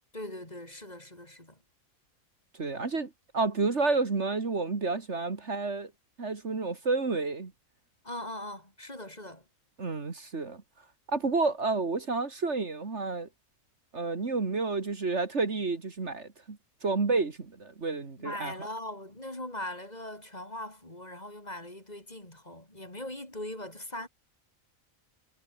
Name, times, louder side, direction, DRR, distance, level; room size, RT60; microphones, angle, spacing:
voice 1, 0.1-1.6 8.0-9.4 18.2-24.1, left 1 dB, 30° left, 4.7 m, -40 dB
voice 2, 2.6-5.9 6.2-7.5 9.8-10.6 11.1-13.3 13.9-18.5, right 3 dB, 55° right, 2.4 m, -30 dB
omnidirectional pair, 1.4 m